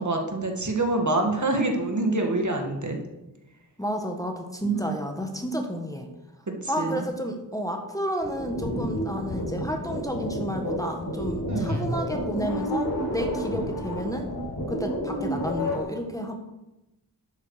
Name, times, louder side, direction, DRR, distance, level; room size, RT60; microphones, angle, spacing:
voice 1, 0.0-3.0 4.6-5.0 6.5-7.0 11.5-11.9, right 2 dB, 45° right, 3 dB, 2.1 m, -26 dB
voice 2, 3.8-6.1 6.7-14.3 14.7-16.3, equal, 10° left, 3 dB, 1.4 m, -31 dB
sound 1, 8.2-15.8, equal, 70° left, 4.3 m, -30 dB
12.0 x 8.7 x 5.0 m, 0.97 s
wide cardioid pair, 80°, 40 cm